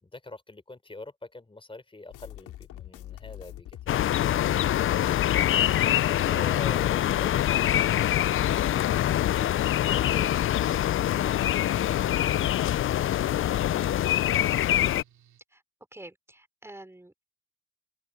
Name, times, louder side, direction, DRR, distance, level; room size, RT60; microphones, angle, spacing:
voice 1, 0.0-4.2 5.4-8.2, left 2 dB, 15° left, 3.6 m, -44 dB
sound 1, 2.1-13.1, left 13 dB, 85° left, 2.7 m, -44 dB
sound 2, 3.9-15.0, left 12 dB, 45° left, 0.4 m, -24 dB
voice 2, 4.5-5.3 12.7-13.1 15.5-15.6 15.9-17.2, right 1 dB, 10° right, 5.3 m, -49 dB
Mechanical fan, 10.1-15.4, right 10 dB, 70° right, 2.5 m, -60 dB
cardioid pair, 90°, 30 cm